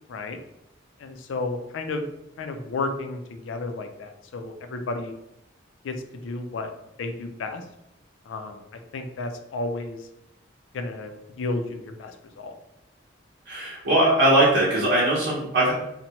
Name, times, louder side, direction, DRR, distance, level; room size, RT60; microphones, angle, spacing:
voice 1, 1.0-2.0 2.4-5.1 5.8-5.9 6.2-6.7 7.0-7.6 8.3-10.1 10.7-12.5, left 3 dB, 85° left, 6 dB, 0.4 m, -32 dB
voice 2, 13.5-15.7, right 1 dB, 70° right, -7 dB, 0.8 m, -20 dB
2.7 x 2.1 x 2.9 m, 0.86 s
head